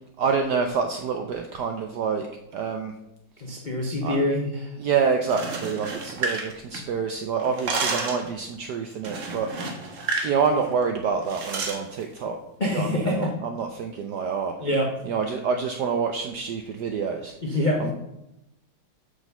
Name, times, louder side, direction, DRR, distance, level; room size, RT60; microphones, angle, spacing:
voice 1, 0.2-2.3 2.5-2.9 4.0-4.2 4.8-9.5 10.2-12.4 12.7-14.5 15.0-17.3 17.8-17.9, right 5 dB, 80° right, 4 dB, 0.9 m, -27 dB
voice 2, 3.4-4.7 12.6-13.3 14.6-14.9 17.4-17.9, left 1 dB, 80° left, -1 dB, 0.4 m, -25 dB
sound 1, 5.2-7.1 7.4-8.3 9.0-10.4 10.6-10.8 11.3-11.8, right 3 dB, 50° right, 0.9 m, -30 dB
6.3 x 5.2 x 5.3 m, 0.87 s
omnidirectional pair, 2.4 m